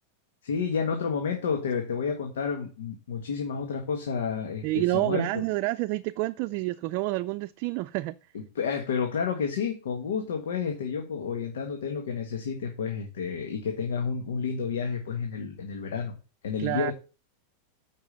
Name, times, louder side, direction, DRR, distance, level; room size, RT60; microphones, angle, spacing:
voice 1, 0.4-5.4 8.3-16.2 16.4-16.9, left 6 dB, 90° left, 1.7 m, -30 dB
voice 2, 4.6-8.2 16.6-16.9, right 18 dB, 50° right, 0.4 m, -28 dB
8.4 x 5.4 x 5.4 m
supercardioid pair, 135°, 0 cm